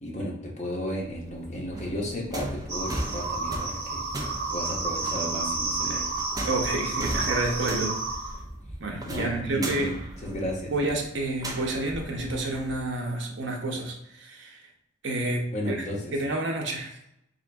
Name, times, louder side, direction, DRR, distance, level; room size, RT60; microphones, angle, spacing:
voice 1, 0.0-4.1 4.5-6.1 9.0-10.7 15.5-16.2, equal, 35° left, -3 dB, 1.0 m, -33 dB
sound 1, 0.9-12.9, right 1 dB, 20° right, 0.4 m, -38 dB
sound 2, 2.7-8.4, right 3 dB, 35° right, 0.9 m, -31 dB
voice 2, 6.4-8.0 8.8-9.9 10.7-14.6 15.0-15.8 16.1-17.0, right 2 dB, 75° right, 1 dB, 0.8 m, -29 dB
3.7 x 2.6 x 3.4 m, 0.79 s
head